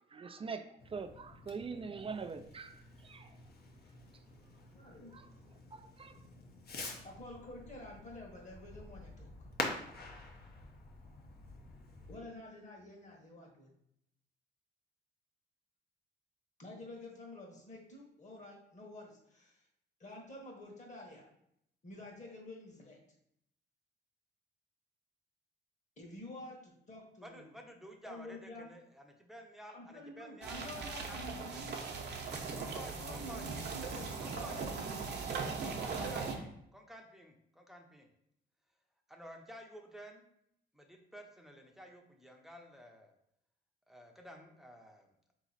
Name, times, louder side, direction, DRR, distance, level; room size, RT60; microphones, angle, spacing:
voice 1, 0.1-0.6 0.9-3.3 5.1-5.2 5.7-6.2, right 5 dB, 30° right, 0.4 m, -43 dB
Fireworks, 0.8-12.2, left 3 dB, 50° left, 0.9 m, -47 dB
voice 2, 4.7-5.2 7.0-9.3 12.1-13.7 16.6-19.6 20.0-21.3 21.8-23.0 26.0-27.5 28.0-28.7 29.7-31.8 33.0-34.9, left 1 dB, 35° left, 1.4 m, -49 dB
voice 3, 27.2-31.6 32.5-33.5 34.2-34.6 35.1-35.2 35.6-38.1 39.1-40.3 40.7-43.1 43.9-45.1, equal, ahead, 0.7 m, -52 dB
sound 1, 30.4-36.3, right 4 dB, 55° right, 0.8 m, -39 dB
3.8 x 3.1 x 4.0 m
cardioid pair, 90°, 20 cm